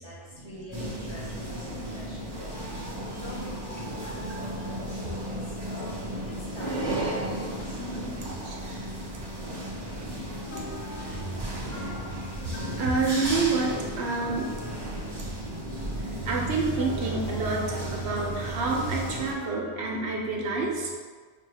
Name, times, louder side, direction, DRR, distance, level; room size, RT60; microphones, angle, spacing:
voice 1, 0.0-2.9 3.2-4.3 4.9-7.1, left 1 dB, 25° left, -7 dB, 1.0 m, -45 dB
sound 1, 0.7-19.3, right 1 dB, 25° right, 0.7 m, -35 dB
voice 2, 1.7-2.1 2.9-3.2 4.3-5.0 7.2-8.6 11.0-11.3 12.8-14.5 16.0-20.9, right 3 dB, 70° right, -1 dB, 1.0 m, -29 dB
sound 2, 10.2-20.2, left 1 dB, 65° left, 0.9 m, -44 dB
5.3 x 2.2 x 3.4 m, 1.5 s
omnidirectional pair, 1.2 m